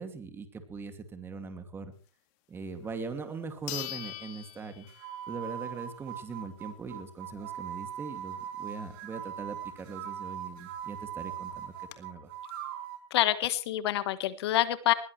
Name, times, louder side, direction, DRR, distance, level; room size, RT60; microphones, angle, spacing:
voice 1, 0.0-1.9 2.5-4.9 5.3-12.3, right 4 dB, 15° right, 7 dB, 2.5 m, -41 dB
sound 1, 2.8-2.9 3.7-5.4 5.8-5.9 10.5-10.6 10.8-10.9 11.5-11.9, left 17 dB, 40° left, 2.1 m, -41 dB
sound 2, 4.9-13.1, right 10 dB, 45° right, 5.5 m, -41 dB
voice 2, 13.1-14.9, left 13 dB, 55° left, 13 dB, 1.5 m, -27 dB
21.0 x 18.0 x 3.3 m, 0.38 s
hypercardioid pair, 135°, 16 cm